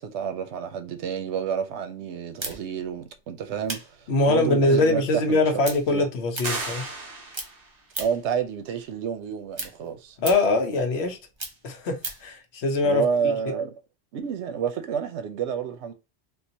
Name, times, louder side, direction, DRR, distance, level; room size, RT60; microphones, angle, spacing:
voice 1, 0.0-5.6 5.9-6.1 8.0-10.2 12.8-13.7 14.1-15.9, right 7 dB, 85° right, 0.9 m, -29 dB
sound 1, 2.4-7.1 7.3-8.3 8.7-12.3, right 3 dB, 30° right, 0.7 m, -37 dB
voice 2, 4.1-6.8 10.2-11.2 11.6-13.0, left 2 dB, 75° left, 1.0 m, -22 dB
sound 2, 6.4-7.8, right 2 dB, 55° right, 1.2 m, -33 dB
3.8 x 2.4 x 2.7 m
omnidirectional pair, 1.1 m